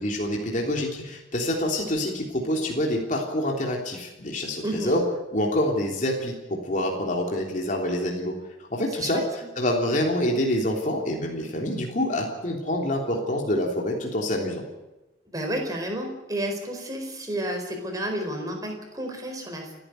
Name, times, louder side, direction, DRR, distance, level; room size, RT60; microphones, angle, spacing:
voice 1, 0.0-5.0 5.3-8.4 8.7-9.2 9.6-14.6, left 1 dB, 40° left, 0 dB, 3.3 m, -26 dB
voice 2, 4.6-5.0 9.0-9.2 15.3-19.7, right 1 dB, 20° right, 3 dB, 4.5 m, -31 dB
29.0 x 11.0 x 9.4 m, 1.0 s
head